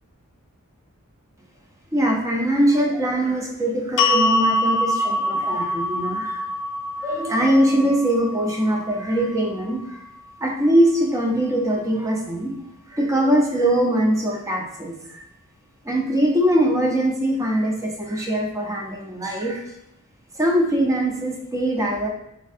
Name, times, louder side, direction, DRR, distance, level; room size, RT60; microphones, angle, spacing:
voice 1, 1.9-6.4 7.0-10.0 10.4-12.5 12.9-15.2 15.9-19.6 20.4-22.1, right 1 dB, 15° right, 0 dB, 0.5 m, -22 dB
sound 1, 4.0-10.2, left 1 dB, 60° left, 0.4 m, -25 dB
4.4 x 3.5 x 2.4 m, 0.80 s
head